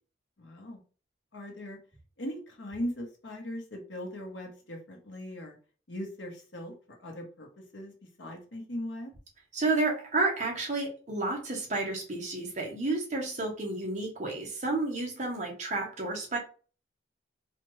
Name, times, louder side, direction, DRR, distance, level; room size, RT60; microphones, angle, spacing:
voice 1, 0.4-0.8 1.3-1.8 2.2-5.6 5.9-6.7 7.0-7.5 7.7-7.9 8.2-9.1, equal, 75° left, 2 dB, 1.1 m, -39 dB
voice 2, 9.5-16.4, right 2 dB, 40° right, 0 dB, 1.0 m, -31 dB
4.2 x 2.5 x 3.1 m, 0.38 s
head